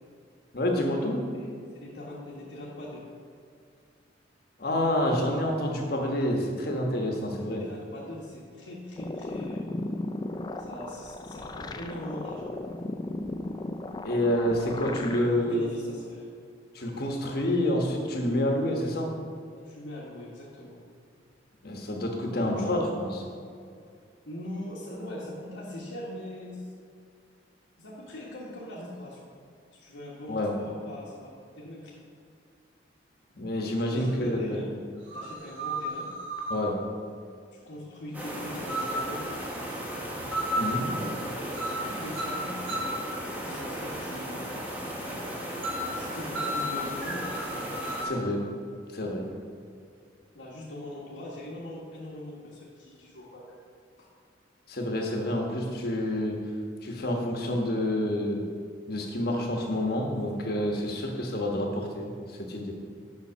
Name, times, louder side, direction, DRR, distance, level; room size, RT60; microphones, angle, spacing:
voice 1, 0.5-1.2 4.6-7.6 14.0-15.7 16.7-19.1 21.6-23.2 30.3-30.5 33.4-34.6 36.5-36.8 40.5-40.8 48.0-48.5 48.9-49.3 54.7-56.4 56.8-58.4 58.9-62.7, left 1 dB, 55° left, 1 dB, 1.3 m, -28 dB
voice 2, 1.7-3.1 7.6-9.7 10.6-12.5 14.9-16.3 19.5-20.8 22.3-22.7 24.2-26.7 27.8-29.2 29.7-32.0 33.9-34.7 35.1-36.1 37.5-39.2 40.5-41.3 41.7-44.4 45.8-47.5 50.3-53.6 54.0-54.1, left 1 dB, 80° left, -6 dB, 1.4 m, -41 dB
sound 1, 9.0-15.3, left 2 dB, 20° left, 0.3 m, -36 dB
sound 2, 34.1-34.2 35.1-36.7 38.7-39.1 40.3-40.8 41.5-41.9 42.1-43.0 45.6-45.9 46.3-48.1, equal, 80° right, 1.5 m, -33 dB
sound 3, 38.1-48.1, right 1 dB, 10° right, 1.2 m, -36 dB
7.2 x 5.8 x 6.2 m, 2.3 s
head